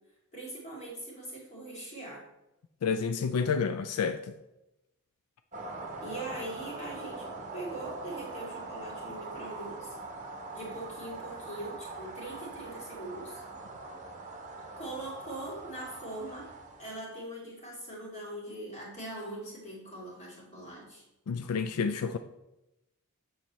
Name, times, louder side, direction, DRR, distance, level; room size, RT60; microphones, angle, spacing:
voice 1, 0.3-2.2 6.0-10.0 10.5-13.4 14.8-16.5 16.8-21.0, right 1 dB, 30° left, -4 dB, 2.6 m, -41 dB
voice 2, 2.8-4.3 21.3-22.2, left 5 dB, 90° left, 9 dB, 0.4 m, -29 dB
sound 1, 5.5-17.0, right 3 dB, 35° right, 0.9 m, -42 dB
7.1 x 6.6 x 3.1 m, 0.93 s
head